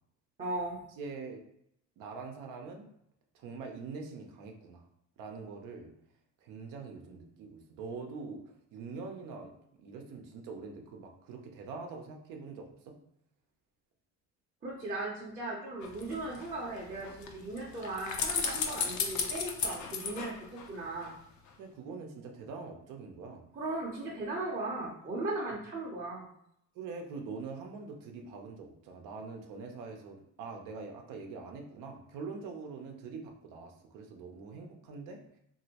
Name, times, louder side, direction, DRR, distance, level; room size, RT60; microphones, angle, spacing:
voice 1, 0.4-0.8 14.6-21.1 23.5-26.3, right 2 dB, 25° right, -5 dB, 0.6 m, -37 dB
voice 2, 1.0-1.4 2.0-2.9 3.3-4.8 5.2-5.9 6.4-8.4 8.7-12.9 21.6-23.5 26.7-35.2, right 4 dB, 85° right, 2 dB, 0.6 m, -44 dB
sound 1, 15.8-21.1 21.5-21.6, left 5 dB, 65° left, 0.6 m, -36 dB
3.0 x 2.6 x 2.8 m, 0.74 s
cardioid pair, 125°, 32 cm